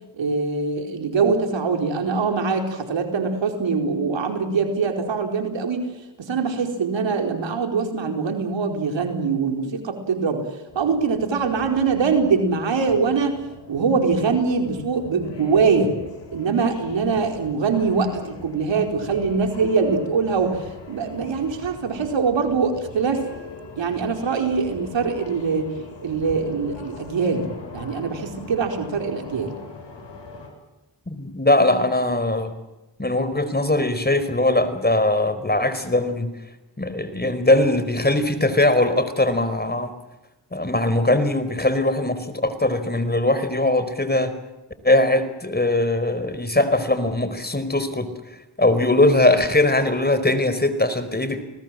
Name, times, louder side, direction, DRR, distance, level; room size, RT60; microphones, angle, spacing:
voice 1, 0.2-5.9 6.2-10.4 10.7-13.4 13.7-15.9 16.3-20.5 20.9-23.2 23.8-25.7 26.0-27.5 27.7-29.5, right 5 dB, 75° right, 4 dB, 4.6 m, -23 dB
sound 1, 10.7-30.5, left 4 dB, 70° left, 7.5 m, -42 dB
voice 2, 31.1-32.5 33.0-36.3 36.8-39.9 40.5-44.3 44.8-48.1 48.6-51.4, left 2 dB, 20° left, 12 dB, 4.6 m, -20 dB
30.0 x 19.5 x 7.6 m, 1.0 s
supercardioid pair, 45°, 45 cm